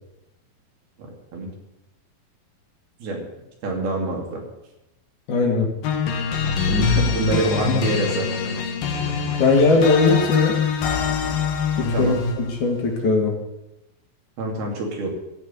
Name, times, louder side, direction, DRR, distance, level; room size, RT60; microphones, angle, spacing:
voice 1, 3.6-4.4 6.7-8.6 11.9-12.2 14.4-15.1, right 2 dB, 85° right, 0 dB, 4.6 m, -25 dB
voice 2, 5.3-5.7 7.3-7.8 9.4-10.6 11.8-13.4, left 3 dB, 60° left, 1 dB, 3.1 m, -20 dB
sound 1, 5.8-12.5, left 6 dB, 75° left, 3.1 m, -24 dB
15.0 x 5.6 x 9.8 m, 0.92 s
omnidirectional pair, 4.3 m